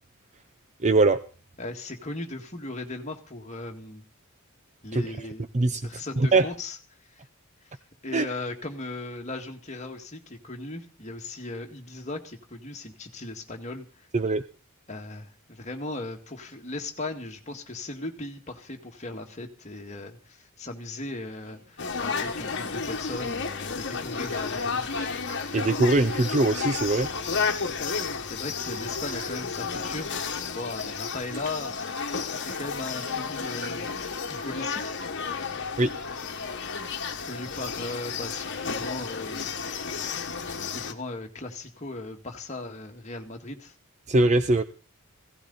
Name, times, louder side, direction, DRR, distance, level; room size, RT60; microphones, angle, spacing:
voice 1, 0.8-1.2 4.9-5.0 5.5-5.8 6.2-6.5 8.1-8.2 14.1-14.4 25.5-27.1 27.3-27.5 35.8-35.9 44.1-44.6, right 2 dB, 35° right, 11 dB, 0.6 m, -22 dB
voice 2, 1.6-4.0 4.8-5.5 5.8-6.8 7.1-7.2 8.0-14.1 14.9-25.0 27.9-30.2 30.5-31.7 32.0-33.9 34.3-35.0 37.2-39.5 40.5-43.7, left 2 dB, 30° left, 3 dB, 2.0 m, -37 dB
sound 1, 21.4-36.2, right 2 dB, 55° right, 7.2 m, -51 dB
sound 2, 21.8-40.9, left 5 dB, 55° left, 1.5 m, -32 dB
16.5 x 15.0 x 4.1 m, 0.39 s
head